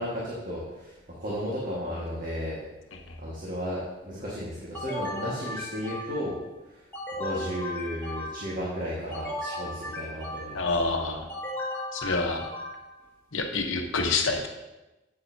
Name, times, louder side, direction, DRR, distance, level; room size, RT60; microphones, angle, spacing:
voice 1, 0.0-2.6 3.2-6.4 6.7-6.8 7.2-10.6, equal, 45° right, -6 dB, 1.7 m, -34 dB
sound 1, 4.7-6.4 6.9-8.6 9.1-10.8 11.3-13.0, left 1 dB, 10° left, 1.6 m, -36 dB
voice 2, 10.5-11.3 11.9-12.5 13.3-14.5, left 3 dB, 75° left, 3 dB, 1.0 m, -27 dB
8.7 x 8.5 x 2.7 m, 1.0 s
head